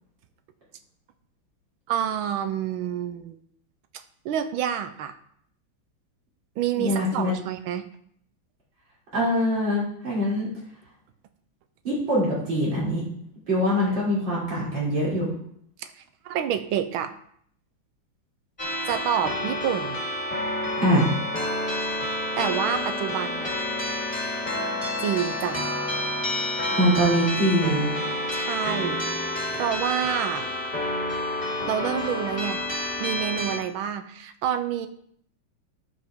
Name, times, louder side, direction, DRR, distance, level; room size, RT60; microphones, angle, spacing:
voice 1, 1.9-3.4 4.2-5.2 6.6-7.9 15.8-15.9 16.2-17.1 18.9-20.0 22.4-23.5 25.0-25.6 28.3-29.0 29.5-30.5 31.7-32.6 33.0-34.9, right 9 dB, 85° right, 9 dB, 1.5 m, -28 dB
voice 2, 6.8-7.3 9.1-10.5 11.8-13.0 13.5-15.3 20.8-21.1 26.8-27.9, equal, 60° right, -7 dB, 4.0 m, -23 dB
sound 1, 18.6-33.6, left 1 dB, 20° left, 2.1 m, -29 dB
13.5 x 5.3 x 3.6 m, 0.65 s
omnidirectional pair, 2.2 m